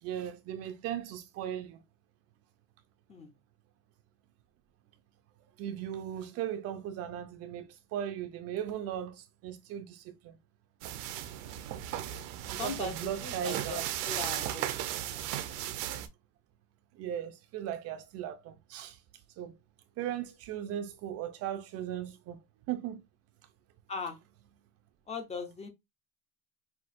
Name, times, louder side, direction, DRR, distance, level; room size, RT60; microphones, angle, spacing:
voice 1, 0.0-1.8 5.6-10.4 12.1-12.2 12.5-13.8 16.9-19.0 19.4-19.5 20.0-22.4 22.7-23.0, right 10 dB, 40° right, 0.5 m, -37 dB
sound 1, 10.8-16.1, right 12 dB, 70° right, 0.8 m, -36 dB
voice 2, 12.5-12.9 13.2-14.8 15.1-15.2 23.9-24.2 25.1-25.7, left 5 dB, 15° left, 0.6 m, -39 dB
5.8 x 2.7 x 2.5 m
cardioid pair, 165°, 37 cm